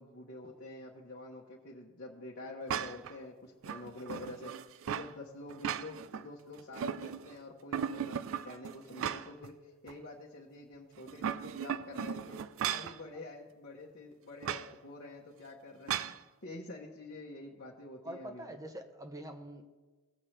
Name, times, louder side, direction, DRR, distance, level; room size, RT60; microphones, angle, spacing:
voice 1, 0.0-4.5 4.9-12.4 12.7-18.5, left 2 dB, 50° left, -4 dB, 1.1 m, -47 dB
sound 1, 2.7-3.1 3.6-5.1 5.5-6.2 6.6-7.3 7.7-9.5 9.9-10.0 11.0-13.0 14.4-14.7 15.9-16.2, right 8 dB, 65° right, 0.4 m, -36 dB
voice 2, 18.0-19.7, right 1 dB, 15° right, 6 dB, 0.9 m, -44 dB
18.0 x 7.5 x 3.3 m, 1.2 s
head